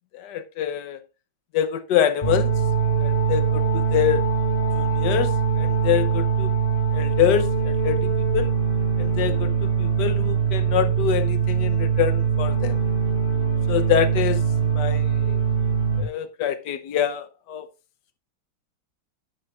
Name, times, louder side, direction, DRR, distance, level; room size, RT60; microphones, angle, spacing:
voice 1, 0.1-1.0 1.5-2.5 3.0-4.2 4.7-6.5 6.9-8.5 9.0-12.8 13.7-14.4 14.7-15.4 16.0-17.7, left 10 dB, 65° left, 1.4 m, -25 dB
sound 1, 2.2-16.0, right 6 dB, 25° left, 2.4 m, -22 dB
11.0 x 10.5 x 2.5 m
omnidirectional pair, 2.2 m